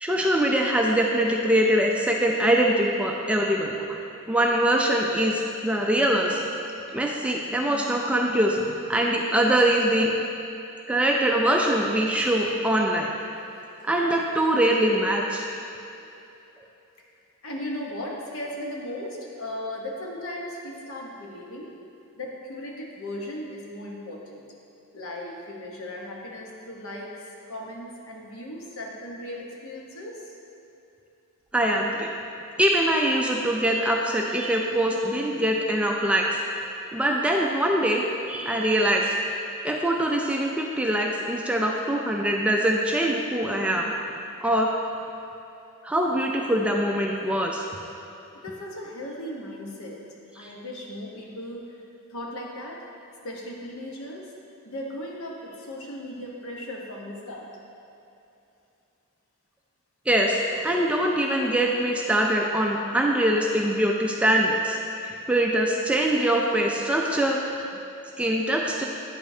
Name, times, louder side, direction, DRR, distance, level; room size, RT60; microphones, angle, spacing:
voice 1, 0.0-3.8 4.3-6.4 6.9-8.6 8.9-10.1 10.9-13.1 13.8-15.4 31.5-32.1 32.6-36.3 36.9-39.1 39.6-43.9 44.4-44.7 45.8-47.6 50.4-50.5 60.1-64.8 65.0-67.4 68.2-68.8, right 1 dB, 5° right, -1 dB, 0.3 m, -23 dB
voice 2, 17.4-21.7 22.2-24.4 24.9-27.1 27.5-30.2 48.4-50.0 50.3-51.8 52.1-52.8 53.2-54.3 54.6-57.5, left 1 dB, 65° left, -2 dB, 1.0 m, -37 dB
9.6 x 5.1 x 2.7 m, 2.8 s
head